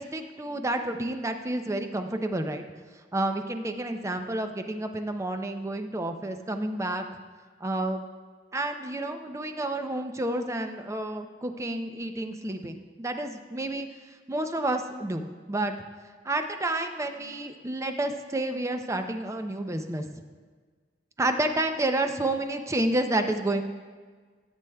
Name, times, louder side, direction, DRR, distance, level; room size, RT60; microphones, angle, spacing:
voice 1, 0.0-2.6 3.1-7.0 7.6-8.0 8.5-13.9 14.3-15.7 16.2-20.1 21.2-23.6, right 1 dB, 15° right, 6 dB, 0.4 m, -30 dB
14.0 x 7.7 x 2.2 m, 1.5 s
head